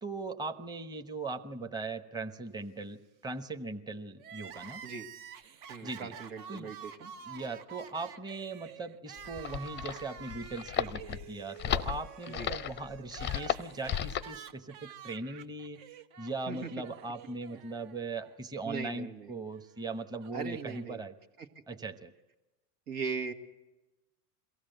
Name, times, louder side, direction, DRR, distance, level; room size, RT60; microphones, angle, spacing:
voice 1, 0.0-4.8 5.8-6.1 6.5-6.7 7.3-15.8 16.2-21.1 21.7-22.1, right 3 dB, 10° right, 7 dB, 0.9 m, -39 dB
Crying sobbing, 4.2-18.3 18.6-18.7 19.7-20.8, right 8 dB, 55° right, 1.2 m, -49 dB
voice 2, 5.7-7.1 12.3-12.5 16.5-16.7 18.6-19.3 20.3-21.0 21.4-21.6 22.9-23.3, right 5 dB, 80° right, 5 dB, 1.9 m, -39 dB
sound 1, 9.2-14.4, left 10 dB, 25° left, 0.6 m, -34 dB
23.0 x 16.0 x 7.9 m, 1.1 s
hypercardioid pair, 90°, 45 cm